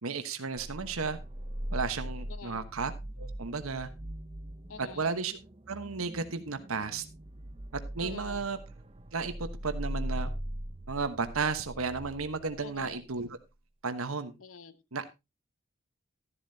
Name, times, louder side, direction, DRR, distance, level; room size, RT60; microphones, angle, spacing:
voice 1, 0.0-1.2 1.7-2.9 3.2-3.9 4.8-5.4 5.7-7.0 7.7-8.6 9.1-9.3 9.6-10.3 10.9-13.3 13.8-14.3 14.9-15.0, right 4 dB, 80° right, 9 dB, 1.2 m, -33 dB
sound 1, 0.6-13.2, right 1 dB, 25° right, 0.7 m, -40 dB
voice 2, 2.3-2.7 4.7-5.0 8.0-8.4 12.6-13.0 14.4-14.8, left 4 dB, 75° left, 14 dB, 0.9 m, -46 dB
13.0 x 11.0 x 2.7 m, 0.24 s
head